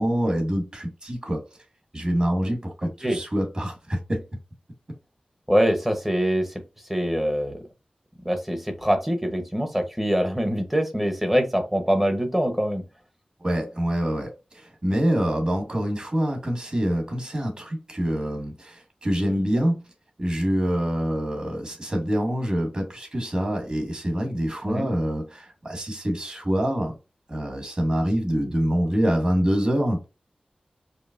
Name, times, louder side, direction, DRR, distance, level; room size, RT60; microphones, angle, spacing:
voice 1, 0.0-1.4 1.9-4.2 13.4-19.8 20.2-26.9 27.3-30.0, equal, 40° right, 1.6 m, -25 dB
voice 2, 5.5-6.5 6.9-7.6 8.2-12.8 24.6-24.9, equal, 10° right, 0.9 m, -24 dB
5.1 x 2.1 x 2.5 m
wide cardioid pair, 70°, 3 cm